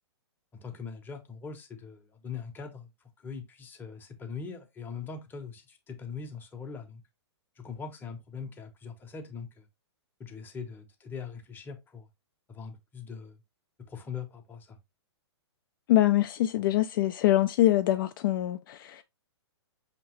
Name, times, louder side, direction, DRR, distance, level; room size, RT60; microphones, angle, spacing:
voice 1, 0.5-2.9 3.2-7.0 7.6-9.7 10.2-12.1 12.5-13.4 13.9-14.8, left 5 dB, 15° left, 0.8 m, -41 dB
voice 2, 15.9-19.0, left 14 dB, 50° left, 0.4 m, -24 dB
5.3 x 2.9 x 2.9 m
hypercardioid pair, 130°, 15 cm